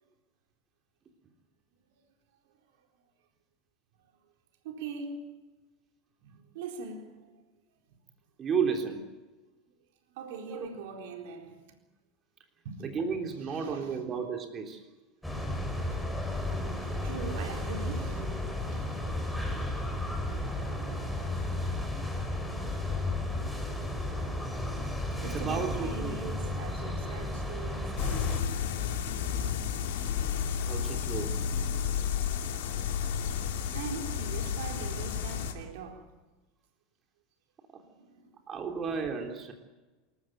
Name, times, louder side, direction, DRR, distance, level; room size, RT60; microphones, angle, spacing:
voice 1, 4.6-5.3 6.2-7.3 10.1-11.6 12.6-12.9 13.3-14.0 16.5-18.3 18.6-18.9 25.2-28.6 33.6-36.1 37.8-38.2, right 5 dB, 65° right, 4.1 m, -42 dB
voice 2, 8.4-9.1 10.5-10.7 12.8-14.8 25.3-26.3 30.7-31.4 37.7-37.8 38.5-39.5, right 6 dB, 30° right, 3.5 m, -33 dB
sound 1, 15.2-28.4, left 1 dB, 5° left, 5.9 m, -33 dB
sound 2, 28.0-35.5, left 7 dB, 65° left, 3.0 m, -32 dB
27.5 x 14.5 x 9.4 m
figure-of-eight pair, 80°, 0 cm